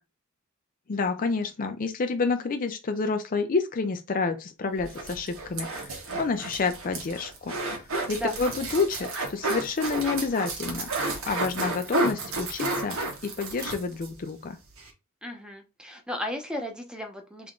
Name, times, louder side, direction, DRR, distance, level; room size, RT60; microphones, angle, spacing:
voice 1, 0.9-7.5 8.1-10.9 11.3-13.0 13.2-14.6, left 4 dB, 40° left, 0.5 m, -29 dB
sound 1, 4.8-14.1 14.4-14.5 14.8-14.9, right 2 dB, 85° right, 1.4 m, -31 dB
voice 2, 15.2-17.5, equal, 5° right, 0.8 m, -34 dB
3.6 x 3.5 x 3.7 m
head